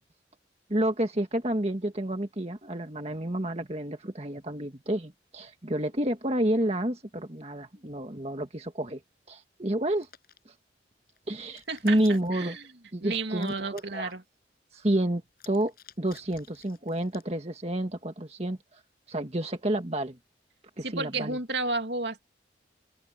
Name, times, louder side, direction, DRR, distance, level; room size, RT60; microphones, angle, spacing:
voice 1, 0.7-9.0 9.3-10.1 11.3-12.6 12.9-14.1 14.7-18.8 19.1-20.2 20.8-21.4, right 1 dB, 35° right, 1.8 m, -30 dB
Hands, 9.9-10.4 11.1-12.4 13.3-14.1 15.3-17.3, left 9 dB, 50° left, 7.2 m, -54 dB
voice 2, 11.7-12.0 12.3-12.7 13.0-14.2 20.8-22.2, right 3 dB, 65° right, 2.5 m, -32 dB
open air
head